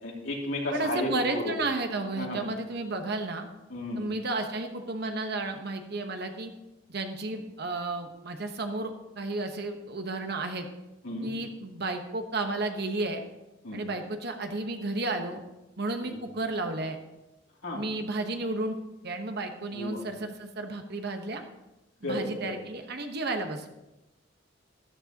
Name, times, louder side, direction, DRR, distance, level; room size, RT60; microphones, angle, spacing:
voice 1, 0.0-1.5 2.1-2.4 3.7-4.0 11.0-11.3 13.6-13.8 16.0-16.1 17.6-17.8 19.7-20.0 22.0-22.6, left 1 dB, 80° left, -2 dB, 2.8 m, -33 dB
voice 2, 0.7-3.5 4.0-6.5 6.9-10.7 11.2-13.2 13.7-15.4 15.8-17.0 17.7-18.8 19.0-21.4 22.0-23.7, right 2 dB, 55° right, 5 dB, 1.2 m, -32 dB
13.0 x 12.0 x 2.9 m, 1.0 s
head